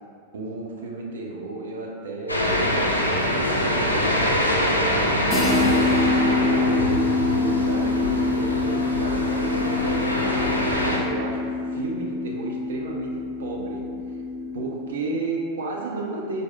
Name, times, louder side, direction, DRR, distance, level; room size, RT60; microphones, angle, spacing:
voice 1, 0.3-10.4 10.8-14.2 14.5-16.4, right 3 dB, 65° right, -2 dB, 0.4 m, -33 dB
sound 1, 2.3-11.0, equal, 85° left, 0.4 m, -24 dB
sound 2, 5.3-14.9, left 3 dB, 15° left, 0.6 m, -25 dB
4.5 x 2.6 x 2.2 m, 2.2 s
figure-of-eight pair, 90°, 0 cm